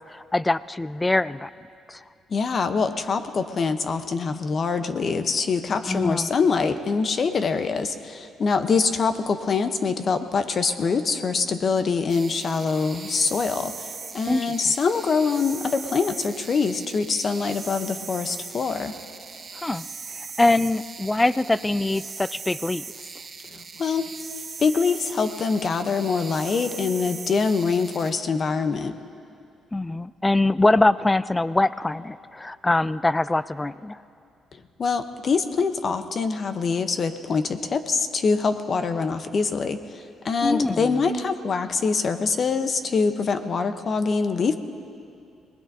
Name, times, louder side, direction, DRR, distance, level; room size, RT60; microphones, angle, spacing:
voice 1, 0.0-1.5 1.9-2.0 5.9-6.3 14.3-14.5 19.6-19.9 20.2-22.8 29.7-34.0 40.4-41.1, left 2 dB, 15° left, 17 dB, 0.3 m, -23 dB
voice 2, 2.3-18.9 23.5-24.1 24.6-29.0 34.8-44.5, left 5 dB, 45° left, 9 dB, 0.9 m, -24 dB
sound 1, 12.1-28.1, right 5 dB, 40° right, 1.1 m, -39 dB
25.0 x 20.0 x 2.8 m, 2.5 s
cardioid pair, 90°, 0 cm